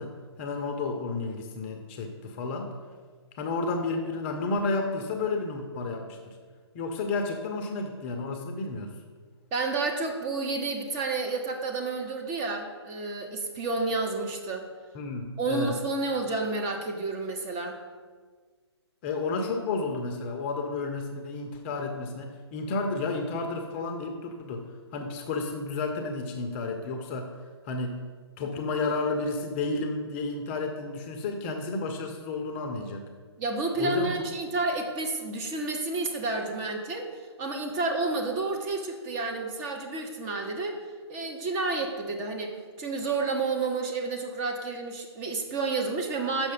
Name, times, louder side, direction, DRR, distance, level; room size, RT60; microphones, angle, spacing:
voice 1, 0.0-2.7 3.4-6.3 6.7-8.9 14.9-15.8 19.0-24.6 24.9-27.3 27.6-28.0 28.4-33.1 33.8-34.1, left 3 dB, 25° left, 4 dB, 0.6 m, -31 dB
voice 2, 9.5-14.6 15.4-17.8 33.4-37.1 37.4-40.8 41.1-46.5, right 3 dB, 20° right, 3 dB, 0.8 m, -30 dB
6.6 x 5.8 x 5.0 m, 1.5 s
hypercardioid pair, 145°, 15 cm